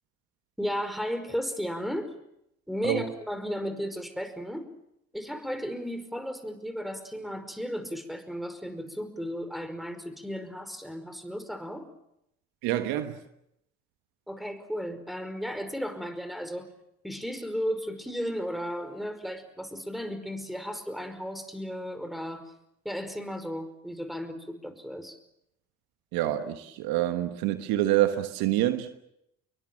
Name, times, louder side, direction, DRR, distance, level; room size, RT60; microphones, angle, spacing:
voice 1, 0.6-2.2 2.7-4.7 5.1-11.9 14.3-16.7 17.0-22.5 22.9-25.2, equal, ahead, 5.2 m, -34 dB
voice 2, 12.6-13.2 26.1-29.0, right 13 dB, 75° right, 1.4 m, -27 dB
25.5 x 23.0 x 7.5 m
hypercardioid pair, 50°, 36 cm